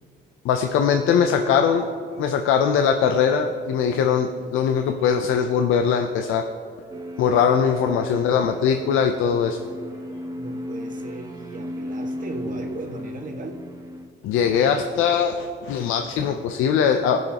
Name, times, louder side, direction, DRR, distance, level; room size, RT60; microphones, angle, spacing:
voice 1, 0.4-1.9 2.2-6.4 7.2-9.6 14.2-17.2, left 7 dB, 90° left, 5 dB, 0.6 m, -21 dB
sound 1, 6.9-14.1, equal, 15° right, 0.9 m, -35 dB
voice 2, 8.1-8.4 10.3-13.6, right 2 dB, 40° right, 2 dB, 1.6 m, -37 dB
17.5 x 6.5 x 2.9 m, 2.1 s
cardioid pair, 90°, 20 cm